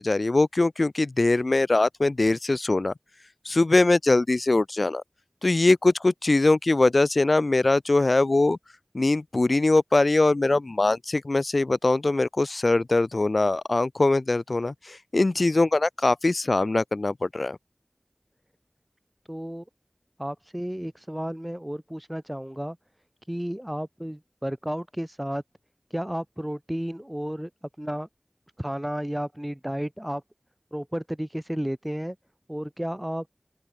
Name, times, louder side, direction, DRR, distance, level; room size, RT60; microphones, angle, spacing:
voice 1, 0.0-2.9 3.4-5.0 5.4-8.6 8.9-17.6, left 2 dB, 80° left, 0.6 m, -22 dB
voice 2, 19.3-19.7 20.2-22.8 23.3-25.4 25.9-27.5 27.8-28.1 28.6-30.2 30.7-32.2 32.5-33.3, equal, 15° right, 2.0 m, -32 dB
open air
wide cardioid pair, 45°, 0 cm